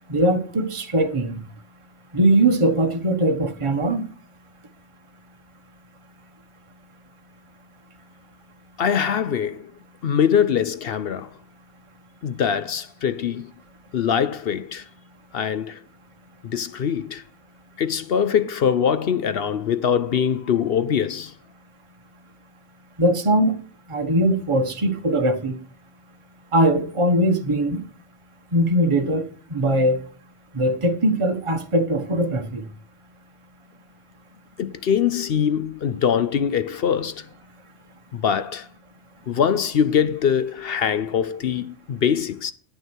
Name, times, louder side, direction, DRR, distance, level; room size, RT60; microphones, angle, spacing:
voice 1, 0.1-1.4 2.1-4.1 23.0-23.6 23.9-25.6 26.5-27.8 28.5-30.0 30.5-32.6, right 1 dB, 25° right, 1.1 m, -21 dB
voice 2, 8.8-9.7 10.0-11.3 12.2-13.5 13.9-14.8 15.3-15.8 16.4-17.2 17.8-21.3 34.6-37.3 38.1-38.7 39.3-42.5, left 8 dB, 55° left, 0.7 m, -23 dB
9.5 x 8.9 x 4.5 m
omnidirectional pair, 1.4 m